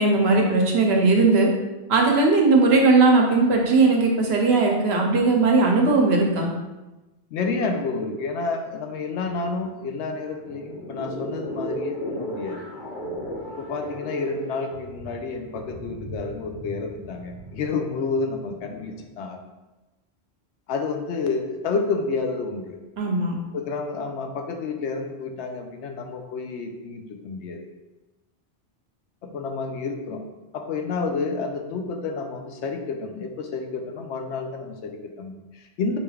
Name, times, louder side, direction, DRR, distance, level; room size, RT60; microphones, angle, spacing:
voice 1, 0.0-1.5 1.9-6.5 23.0-23.3, right 3 dB, 70° right, 1 dB, 0.9 m, -18 dB
voice 2, 7.3-12.6 13.5-19.4 20.7-22.8 23.5-27.6 29.2-30.2 30.5-36.0, left 4 dB, 90° left, 4 dB, 0.9 m, -30 dB
sound 1, 10.3-19.0, equal, 70° left, 1.6 m, -36 dB
5.0 x 3.3 x 2.3 m, 1.1 s
omnidirectional pair, 1.1 m